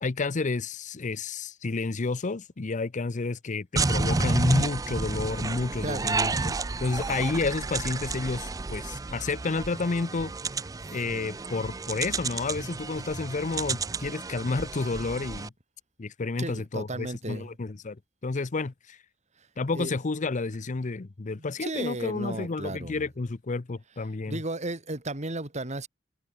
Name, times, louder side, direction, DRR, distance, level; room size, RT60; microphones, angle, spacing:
voice 1, 0.0-6.5 6.8-10.3 10.9-15.5 16.0-18.0 18.2-19.0 19.6-24.4, left 3 dB, 40° left, 0.6 m, -30 dB
sound 1, 3.8-15.5, right 3 dB, 20° right, 0.4 m, -31 dB
voice 2, 5.8-6.1 10.8-11.0 16.4-17.6 19.4-19.5 19.7-19.9 21.4-23.1 24.3-25.9, right 2 dB, 35° right, 3.0 m, -34 dB
head